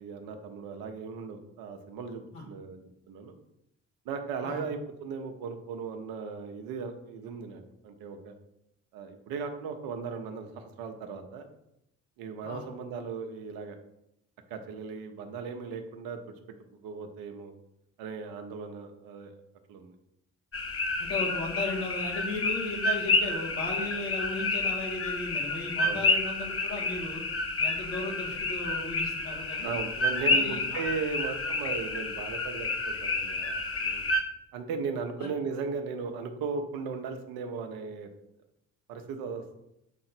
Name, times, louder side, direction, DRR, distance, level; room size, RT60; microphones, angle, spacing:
voice 1, 0.0-3.3 4.0-8.3 8.9-11.5 12.2-13.8 14.5-16.2 16.8-17.5 18.0-19.3 19.7-19.9 25.8-26.0 29.6-34.0 34.5-38.1 38.9-39.5, right 5 dB, 70° right, 5 dB, 1.0 m, -37 dB
sound 1, 20.5-34.2, left 2 dB, 35° left, 1.2 m, -30 dB
voice 2, 21.0-27.2 27.6-29.7 30.3-30.8 35.2-35.3, left 2 dB, 80° left, -2 dB, 2.1 m, -36 dB
7.1 x 3.8 x 4.4 m, 0.82 s
hypercardioid pair, 50°, 37 cm